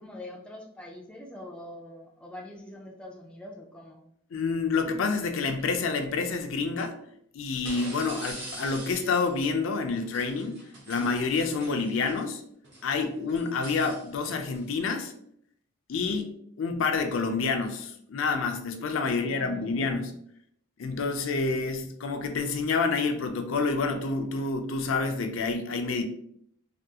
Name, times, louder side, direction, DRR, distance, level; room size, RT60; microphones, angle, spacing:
voice 1, 0.0-4.1 19.0-20.0, left 1 dB, 5° left, -1 dB, 0.3 m, -44 dB
voice 2, 4.3-6.9 7.3-10.6 10.9-12.4 12.8-15.1 15.9-20.1 20.8-26.0, left 4 dB, 70° left, 6 dB, 0.4 m, -28 dB
sound 1, 5.6-5.7 7.6-9.4 10.0-12.2 12.6-14.7, right 1 dB, 60° right, 1.0 m, -44 dB
3.4 x 2.3 x 2.7 m, 0.70 s
head